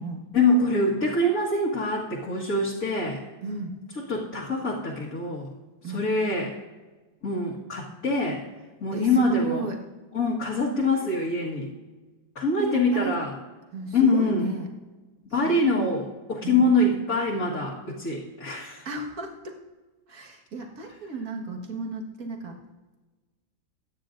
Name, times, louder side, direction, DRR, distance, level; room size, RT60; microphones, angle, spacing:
voice 1, 0.3-3.2 4.1-5.5 5.8-6.5 7.2-8.4 8.8-9.6 10.1-11.7 12.4-13.3 13.9-14.5 15.3-18.9, left 2 dB, 45° left, -6 dB, 2.1 m, -24 dB
voice 2, 3.4-3.7 5.8-6.1 8.9-9.8 10.7-11.2 12.6-13.2 13.7-14.7 15.4-15.9 16.4-16.7 18.9-19.6 20.1-22.6, right 3 dB, 50° right, 1 dB, 1.9 m, -34 dB
23.0 x 9.6 x 2.6 m, 1.2 s
omnidirectional pair, 2.1 m